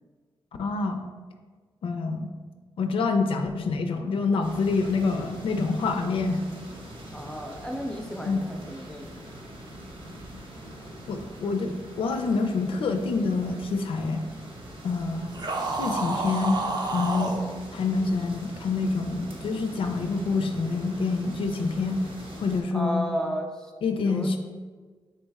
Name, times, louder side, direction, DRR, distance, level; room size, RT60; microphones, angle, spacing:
voice 1, 0.6-1.0 1.8-2.3 2.8-6.4 8.3-8.4 11.1-14.2 14.8-15.3 15.7-16.6 16.9-17.3 17.7-22.1 22.4-23.1 23.8-24.4, left 4 dB, 80° left, 6 dB, 0.4 m, -26 dB
sound 1, 4.4-22.6, right 1 dB, 70° right, 1.0 m, -43 dB
voice 2, 7.1-9.1 22.7-23.7 24.0-24.4, equal, 5° left, 3 dB, 0.5 m, -33 dB
sound 2, 15.3-17.4, right 2 dB, 50° right, 0.6 m, -29 dB
4.0 x 3.1 x 3.4 m, 1.4 s
wide cardioid pair, 90°, 9 cm